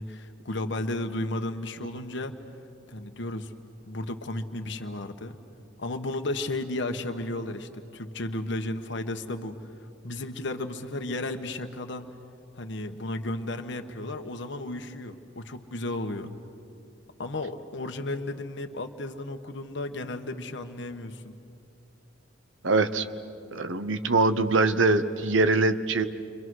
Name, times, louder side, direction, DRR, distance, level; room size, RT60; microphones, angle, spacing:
voice 1, 0.0-2.3 2.9-3.5 3.9-5.4 5.8-9.6 10.0-12.1 12.6-16.3 17.2-21.4, left 2 dB, 65° left, 6 dB, 1.2 m, -33 dB
voice 2, 22.6-23.0 23.5-26.1, right 3 dB, 80° right, 10 dB, 1.0 m, -23 dB
29.5 x 25.0 x 6.3 m, 2.6 s
head